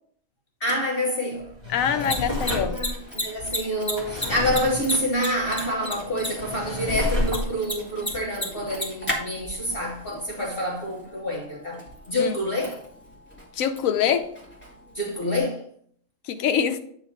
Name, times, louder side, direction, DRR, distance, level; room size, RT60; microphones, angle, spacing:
voice 1, 0.6-1.5 2.0-11.8 12.1-12.8 14.9-15.6, equal, 45° left, 1.3 m, -27 dB
Drawer open or close, 1.4-9.1 9.6-9.7, left 1 dB, 20° right, 1.7 m, -32 dB
voice 2, 1.7-2.8 6.2-6.3 12.2-12.3 13.6-14.3 16.3-16.8, left 8 dB, 80° left, 1.1 m, -24 dB
Mechanisms, 1.8-15.4, left 1 dB, 10° left, 1.3 m, -36 dB
8.4 x 3.1 x 5.0 m
omnidirectional pair, 1.4 m